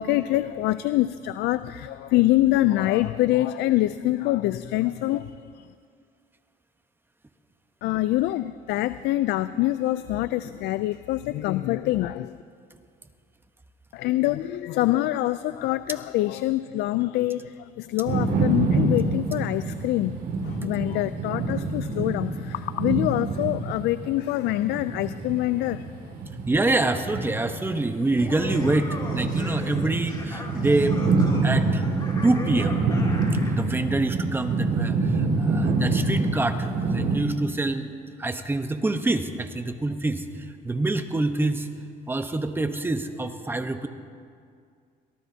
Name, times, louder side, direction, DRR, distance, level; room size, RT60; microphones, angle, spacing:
voice 1, 0.0-5.7 7.8-12.4 13.9-20.2 20.4-25.9, left 15 dB, 80° left, 14 dB, 0.4 m, -25 dB
sound 1, 18.1-37.2, right 3 dB, 65° right, 2.2 m, -26 dB
voice 2, 26.5-31.0 31.4-31.8 32.2-32.9 33.5-37.9 38.2-41.7 42.1-43.9, right 2 dB, 15° right, 8 dB, 0.9 m, -26 dB
Laughter, 28.0-33.6, left 2 dB, 25° left, 2.8 m, -38 dB
23.5 x 18.0 x 2.8 m, 2.2 s
cardioid pair, 110°, 17 cm